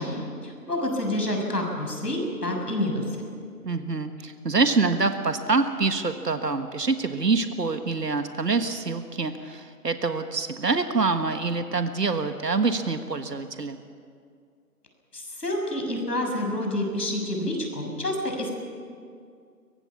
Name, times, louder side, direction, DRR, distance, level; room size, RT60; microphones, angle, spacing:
voice 1, 0.0-3.0 15.1-18.5, left 1 dB, 75° left, 2 dB, 6.8 m, -28 dB
voice 2, 3.6-13.8, right 4 dB, 80° right, 8 dB, 1.6 m, -26 dB
23.5 x 19.0 x 7.2 m, 2.2 s
figure-of-eight pair, 175°, 48 cm